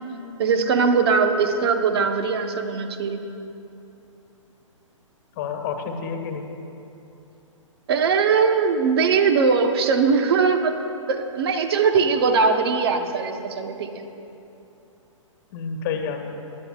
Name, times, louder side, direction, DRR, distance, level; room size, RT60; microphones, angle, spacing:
voice 1, 0.4-3.2 7.9-10.8 11.1-14.0, right 5 dB, 50° right, 6 dB, 1.1 m, -20 dB
voice 2, 5.3-6.5 11.9-12.0 15.5-16.3, left 6 dB, 35° left, 3 dB, 1.4 m, -29 dB
24.0 x 11.5 x 2.4 m, 2.9 s
figure-of-eight pair, 125°, 17 cm